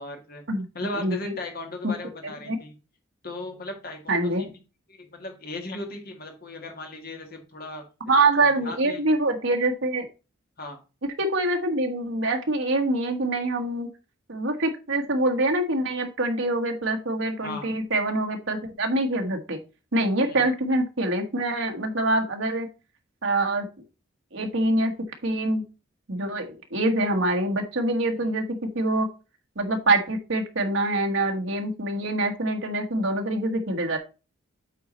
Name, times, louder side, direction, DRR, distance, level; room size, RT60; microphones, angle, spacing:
voice 1, 0.0-0.4 0.7-2.7 3.2-4.6 4.9-9.0 10.6-10.8 17.4-17.7 20.2-20.4 28.1-28.3, left 2 dB, 45° left, 3 dB, 1.9 m, -37 dB
voice 2, 1.0-1.3 1.8-1.9 2.4-2.6 4.1-4.4 8.0-10.1 11.2-13.9 14.3-19.6 19.9-22.7 23.2-23.7 24.3-24.9 25.2-25.6 26.1-28.4 28.7-29.1 29.6-34.0, right 2 dB, 65° right, 3 dB, 1.3 m, -25 dB
8.2 x 4.2 x 3.9 m, 0.31 s
head